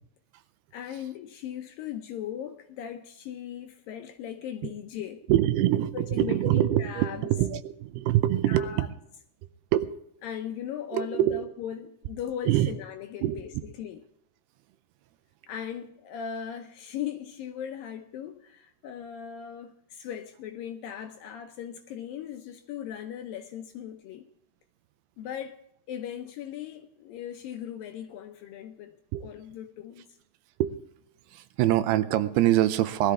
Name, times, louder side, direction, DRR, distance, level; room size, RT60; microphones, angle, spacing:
voice 1, 0.7-5.2 5.9-7.3 8.5-8.9 10.2-14.0 15.5-24.2 25.2-25.6 25.9-30.1, left 9 dB, 75° left, 2.2 m, -38 dB
voice 2, 5.3-8.9 9.7-9.9 10.9-11.4 12.5-12.7 13.2-13.4 29.1-29.2 30.6-30.8 31.3-33.1, right 13 dB, 80° right, 2.6 m, -24 dB
20.0 x 13.5 x 3.5 m
omnidirectional pair, 4.7 m